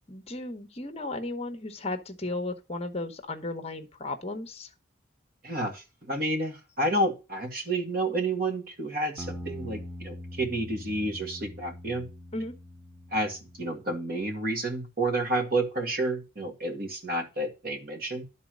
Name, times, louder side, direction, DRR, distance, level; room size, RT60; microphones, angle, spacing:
voice 1, 0.1-4.7 12.3-12.5, left 2 dB, 30° left, 1.1 m, -35 dB
voice 2, 5.4-12.1 13.1-18.2, right 2 dB, 45° right, 2.0 m, -30 dB
sound 1, 9.2-13.8, left 1 dB, 5° right, 1.7 m, -43 dB
12.0 x 4.1 x 6.3 m
head